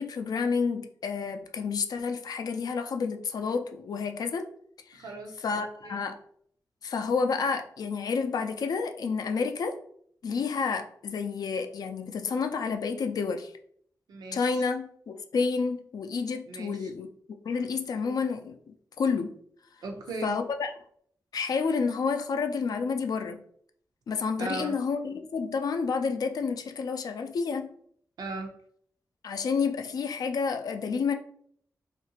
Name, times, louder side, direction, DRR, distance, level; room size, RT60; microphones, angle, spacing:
voice 1, 0.0-4.5 4.9-5.0 5.4-6.2 6.8-9.8 10.2-13.5 14.3-17.1 17.4-19.4 20.2-20.7 21.3-23.4 24.1-27.7 29.2-31.1, left 5 dB, 70° left, 7 dB, 0.4 m, -30 dB
voice 2, 4.9-6.0 14.1-14.7 16.5-16.9 19.8-20.3 24.4-24.7 28.2-28.5, right 3 dB, 90° right, 2 dB, 0.6 m, -38 dB
2.9 x 2.5 x 2.8 m, 0.63 s
cardioid pair, 80°, 7 cm